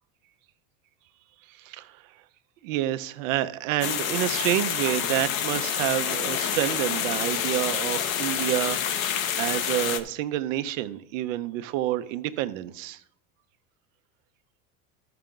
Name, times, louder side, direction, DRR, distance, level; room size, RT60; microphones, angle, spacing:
voice 1, 1.5-2.2 2.6-13.0, right 14 dB, 75° right, 0.8 m, -29 dB
sound 1, 3.8-10.0, left 9 dB, 85° left, 1.0 m, -28 dB
13.0 x 5.8 x 3.8 m
supercardioid pair, 105°, 39 cm